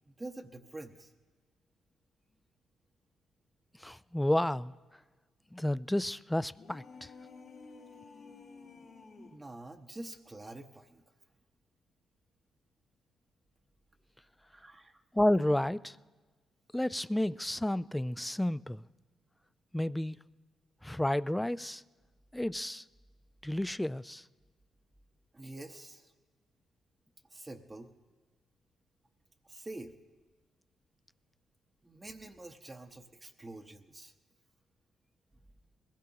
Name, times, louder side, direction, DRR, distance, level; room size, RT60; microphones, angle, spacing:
voice 1, 0.1-1.1 9.2-11.0 14.5-15.0 25.3-26.1 27.3-27.9 29.4-29.9 31.8-34.1, right 2 dB, 25° right, 0.8 m, -47 dB
voice 2, 3.8-4.7 5.5-7.1 15.1-16.0 16.7-18.8 19.7-20.2 20.8-21.8 22.3-22.8 23.4-24.2, left 1 dB, 10° left, 0.3 m, -31 dB
sound 1, 6.5-9.5, left 4 dB, 65° left, 2.0 m, -52 dB
21.5 x 16.0 x 2.9 m
supercardioid pair, 60°, 0 cm